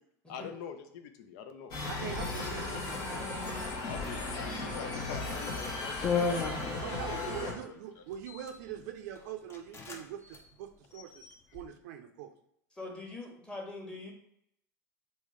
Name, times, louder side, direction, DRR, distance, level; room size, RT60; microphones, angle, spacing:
voice 1, 0.3-1.7 3.8-7.5 8.0-8.1, left 7 dB, 65° left, 7 dB, 0.5 m, -45 dB
sound 1, 1.7-7.5, left 2 dB, 50° left, 1.1 m, -36 dB
voice 2, 1.9-3.3 6.8-11.2 11.5-12.3, right 9 dB, 70° right, 5 dB, 0.5 m, -43 dB
sound 2, 5.2-5.4 6.0-7.2 8.1-8.6 9.1-9.2 9.5-10.0 10.3-10.4 10.9-11.6, left 5 dB, 25° left, 0.7 m, -34 dB
voice 3, 12.7-14.1, left 2 dB, 10° left, 0 dB, 1.2 m, -42 dB
3.6 x 2.7 x 3.1 m, 0.74 s
hypercardioid pair, 85°, 10 cm